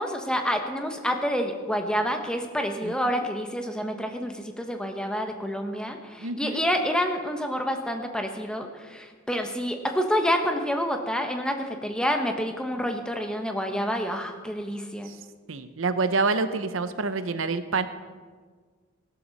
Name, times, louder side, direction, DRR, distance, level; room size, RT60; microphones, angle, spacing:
voice 1, 0.0-15.1, equal, 5° left, 4 dB, 1.1 m, -28 dB
voice 2, 6.2-6.6 15.1-15.2 15.5-17.9, right 3 dB, 70° right, 11 dB, 0.8 m, -27 dB
16.5 x 12.5 x 4.2 m, 1.5 s
head